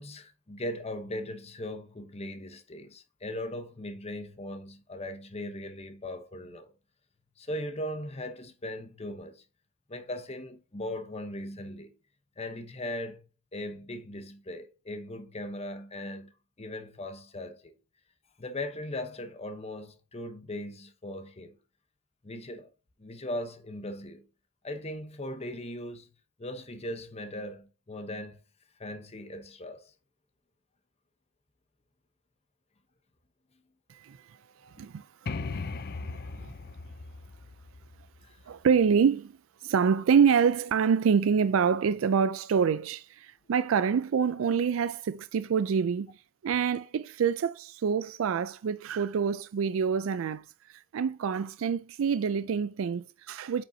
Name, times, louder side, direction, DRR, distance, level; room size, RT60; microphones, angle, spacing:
voice 1, 0.0-6.7 7.4-9.4 9.9-11.9 12.4-16.3 16.6-17.7 18.4-21.5 22.2-22.7 23.0-24.2 24.6-26.1 26.4-28.4 28.8-29.9 35.6-35.8 38.2-38.4, left 1 dB, 30° left, 0.9 m, -39 dB
voice 2, 34.6-35.1 35.4-35.6 36.0-36.5 38.5-39.3 39.6-46.1 46.4-50.4 50.7-53.6, right 6 dB, 80° right, 0.4 m, -26 dB
sound 1, 35.3-38.9, left 3 dB, 50° left, 0.5 m, -38 dB
8.7 x 5.5 x 2.8 m
head